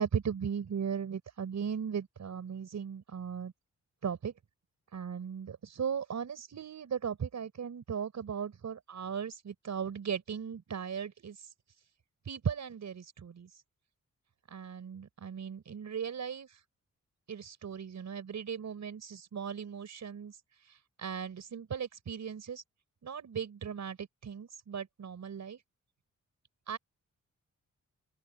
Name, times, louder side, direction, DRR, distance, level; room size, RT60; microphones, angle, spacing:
voice 1, 0.0-3.5 4.0-4.3 4.9-11.4 12.3-13.5 14.5-16.5 17.3-20.4 21.0-22.6 23.0-25.6 26.7-26.8, right 7 dB, 65° right, 5.8 m, -37 dB
open air
wide cardioid pair, 120°, 30 cm